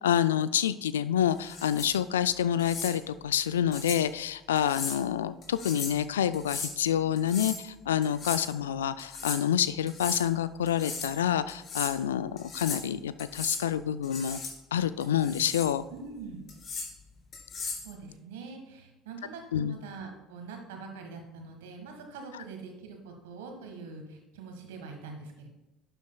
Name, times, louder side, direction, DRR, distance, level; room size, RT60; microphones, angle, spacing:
voice 1, 0.0-14.4 14.7-15.8 19.5-19.7, left 10 dB, 80° left, 15 dB, 0.3 m, -28 dB
sound 1, 1.4-1.9 2.6-2.9 3.7-4.0 4.6-5.0 5.4-6.0 6.3-6.7 7.2-7.6 8.0-8.5 9.0-9.4 9.9-10.2 10.7-11.1 11.5-11.9 12.4-12.9 13.2-13.6 14.0-14.5 15.0-15.7 16.5-16.9 17.3-17.9, left 4 dB, 50° left, 2.6 m, -37 dB
voice 2, 15.9-16.4 17.8-25.5, right 4 dB, 75° right, 3 dB, 1.6 m, -44 dB
11.5 x 7.9 x 2.3 m, 1.0 s
hypercardioid pair, 60°, 0 cm